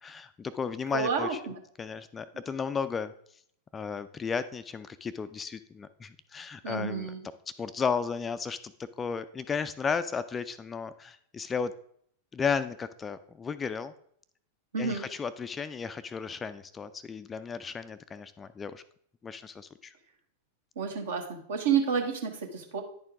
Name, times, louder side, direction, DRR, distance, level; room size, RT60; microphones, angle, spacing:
voice 1, 0.0-3.1 3.7-7.1 7.6-11.7 12.3-13.9 14.8-18.8 19.2-19.9, left 6 dB, 20° left, 13 dB, 0.3 m, -34 dB
voice 2, 0.9-1.3 6.6-7.2 14.7-15.0 20.8-22.8, right 6 dB, 60° right, 3 dB, 1.2 m, -29 dB
10.0 x 4.4 x 3.5 m, 0.65 s
figure-of-eight pair, 90°, 0 cm